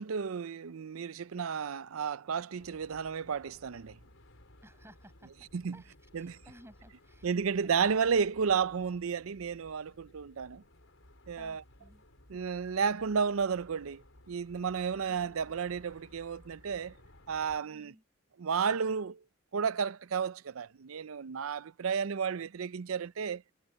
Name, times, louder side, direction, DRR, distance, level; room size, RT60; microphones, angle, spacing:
voice 1, 0.0-4.0 5.5-5.8 6.1-6.4 7.2-10.6 11.3-11.6 12.3-16.9 17.3-17.9 18.4-19.2 19.5-23.4, right 6 dB, 85° right, 0.5 m, -32 dB
sound 1, 2.6-17.6, left 1 dB, 70° left, 5.2 m, -59 dB
voice 2, 4.6-5.3 5.7-7.4 11.4-12.0 17.7-18.0, right 1 dB, 10° right, 7.4 m, -57 dB
head